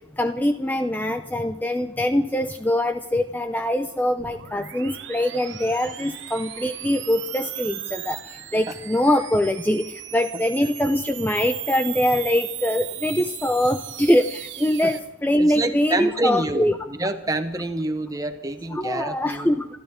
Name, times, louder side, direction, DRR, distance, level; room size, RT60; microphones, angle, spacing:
voice 1, 0.2-16.8 18.7-19.7, left 1 dB, 10° left, 7 dB, 0.5 m, -23 dB
sound 1, 4.2-15.0, right 13 dB, 70° right, 1.0 m, -36 dB
voice 2, 15.4-19.6, right 2 dB, 20° right, 8 dB, 1.0 m, -27 dB
27.5 x 12.5 x 3.7 m, 0.99 s
head